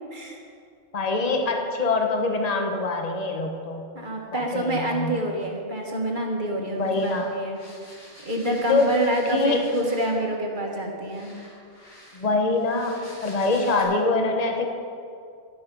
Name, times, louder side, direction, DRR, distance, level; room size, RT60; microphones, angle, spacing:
voice 1, 0.9-3.8 4.3-5.2 6.8-7.3 8.7-8.9 9.3-9.6 12.1-14.7, left 3 dB, 35° left, 3 dB, 1.1 m, -24 dB
voice 2, 3.9-7.6 8.2-11.4, right 1 dB, 40° right, 0 dB, 1.7 m, -27 dB
sound 1, 6.8-10.3 11.1-13.8, left 1 dB, 70° left, 4.0 m, -48 dB
11.5 x 10.5 x 5.4 m, 2.4 s
omnidirectional pair, 1.3 m